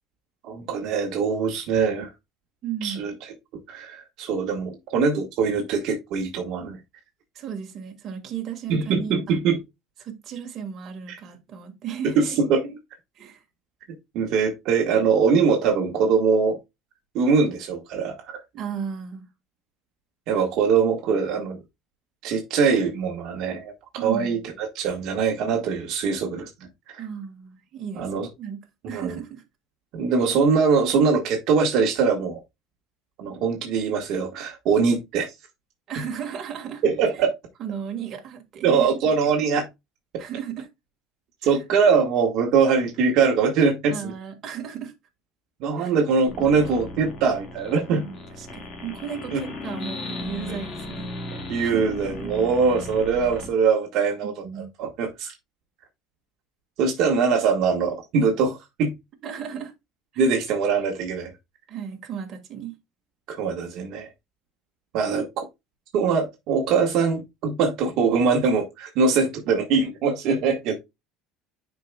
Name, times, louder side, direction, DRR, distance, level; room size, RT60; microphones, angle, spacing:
voice 1, 0.4-2.1 2.8-3.1 3.7-6.8 8.7-9.6 12.0-12.6 14.1-16.6 17.1-18.4 20.3-21.6 22.2-26.5 26.9-27.0 28.0-28.3 28.9-29.2 29.9-32.4 33.2-35.3 36.8-37.3 38.6-39.7 41.4-44.1 45.6-48.0 49.3-49.4 50.5-50.6 51.5-54.3 54.8-55.3 56.8-58.9 60.2-61.3 63.3-64.1 64.9-65.5 65.9-70.7, right 5 dB, 55° right, 1.3 m, -22 dB
voice 2, 2.6-3.1 7.3-9.4 10.0-12.4 13.1-13.4 18.5-19.3 24.0-24.4 27.0-28.6 28.9-29.4 35.9-36.8 37.6-39.0 40.2-40.7 41.4-41.6 43.9-44.9 45.8-45.9 47.9-51.1 51.6-52.3 54.2-54.7 59.2-59.7 60.1-60.3 61.7-62.7, right 8 dB, 35° right, 1.7 m, -35 dB
sound 1, 46.3-53.5, left 2 dB, 40° left, 1.7 m, -36 dB
10.5 x 4.7 x 2.2 m
cardioid pair, 160°, 0 cm